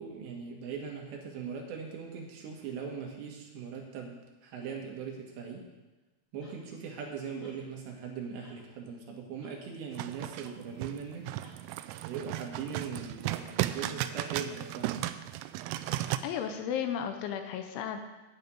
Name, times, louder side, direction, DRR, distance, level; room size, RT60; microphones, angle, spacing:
voice 1, 0.0-5.6 6.3-11.3 12.1-15.0, right 6 dB, 70° right, 0 dB, 3.4 m, -40 dB
sound 1, 6.4-6.6 7.4-7.6 8.4-8.6 9.4-9.6 10.4-10.6 11.4-11.6 12.4-12.5, left 1 dB, 30° left, 1.5 m, -58 dB
sound 2, 10.0-16.2, right 14 dB, 85° right, 3.0 m, -35 dB
voice 2, 15.9-18.0, left 8 dB, 80° left, 6 dB, 3.0 m, -34 dB
9.6 x 6.6 x 8.9 m, 1.1 s
omnidirectional pair, 5.7 m